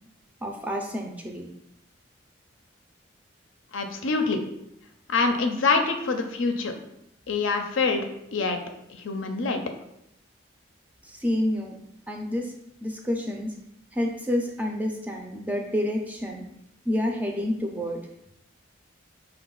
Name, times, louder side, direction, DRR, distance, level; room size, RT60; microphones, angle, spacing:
voice 1, 0.4-1.5 11.0-11.7 12.1-12.5 12.8-13.5 13.9-16.5 16.8-18.0, left 1 dB, 10° right, 1 dB, 0.4 m, -28 dB
voice 2, 3.7-4.4 5.1-6.7 7.3-8.0 8.3-8.6 8.9-9.6, left 4 dB, 80° left, 5 dB, 0.5 m, -25 dB
5.2 x 2.3 x 3.8 m, 0.80 s
head